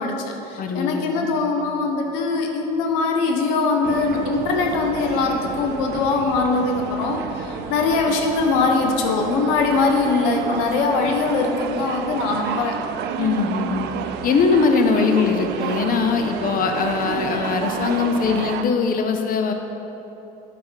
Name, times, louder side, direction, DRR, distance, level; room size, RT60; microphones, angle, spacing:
voice 1, 0.0-12.8, left 4 dB, 80° left, 3 dB, 0.8 m, -22 dB
voice 2, 0.6-1.3 13.2-13.9 14.2-19.5, left 5 dB, 50° left, 5 dB, 0.7 m, -21 dB
sound 1, 3.8-18.6, right 8 dB, 65° right, 0.5 m, -30 dB
8.6 x 5.2 x 4.5 m, 3.0 s
hypercardioid pair, 65°, 19 cm